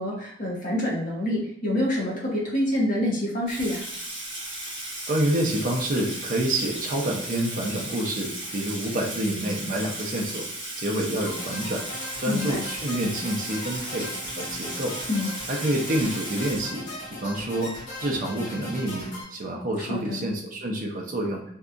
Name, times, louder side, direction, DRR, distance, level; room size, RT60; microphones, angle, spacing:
voice 1, 0.0-3.8 12.3-12.6 15.1-15.3 19.8-20.2, left 1 dB, 45° left, -4 dB, 0.9 m, -27 dB
Water tap faucet / Sink (filling or washing), 3.5-17.2, right 1 dB, 25° right, 1.2 m, -36 dB
voice 2, 5.1-10.5 10.8-11.8 12.2-14.1 14.4-14.9 15.5-16.9 17.2-17.7 18.0-21.4, right 1 dB, 45° right, 0 dB, 0.5 m, -28 dB
sound 1, 11.2-19.2, left 1 dB, 80° left, 1.1 m, -38 dB
2.7 x 2.3 x 2.4 m, 0.74 s
head